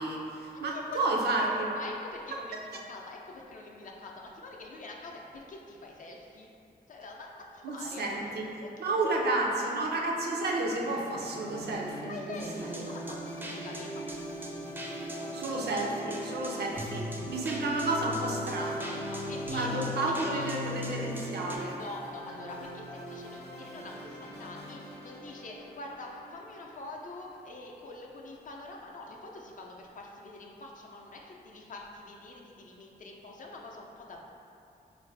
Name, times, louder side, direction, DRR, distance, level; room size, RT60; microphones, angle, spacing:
voice 1, 0.0-1.7 7.6-8.4 8.8-12.4 15.3-19.0 19.5-21.8, right 2 dB, 75° right, -1 dB, 0.5 m, -31 dB
voice 2, 0.7-6.5 6.9-8.9 9.2-10.0 12.1-14.7 15.2-15.7 19.1-20.7 21.7-34.3, left 2 dB, 50° left, -1 dB, 0.4 m, -45 dB
sound 1, 10.5-27.9, equal, 85° left, 0.7 m, -45 dB
sound 2, 12.4-21.6, equal, 10° right, 0.4 m, -38 dB
3.7 x 2.4 x 3.2 m, 2.6 s
wide cardioid pair, 110°, 17 cm